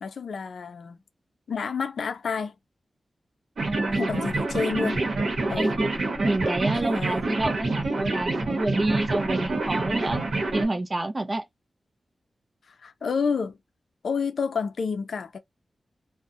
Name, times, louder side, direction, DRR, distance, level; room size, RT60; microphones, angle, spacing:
voice 1, 0.0-1.0 1.5-2.5 3.9-5.0 5.5-5.8 6.7-7.4 12.8-13.6 14.0-15.4, left 5 dB, 80° left, 0.4 m, -29 dB
voice 2, 3.6-4.1 5.6-5.9 6.2-10.2 10.5-11.4, right 2 dB, 25° right, 0.4 m, -28 dB
sound 1, 3.6-10.7, right 2 dB, 70° right, 0.8 m, -27 dB
2.6 x 2.0 x 2.5 m
wide cardioid pair, 155°, 0 cm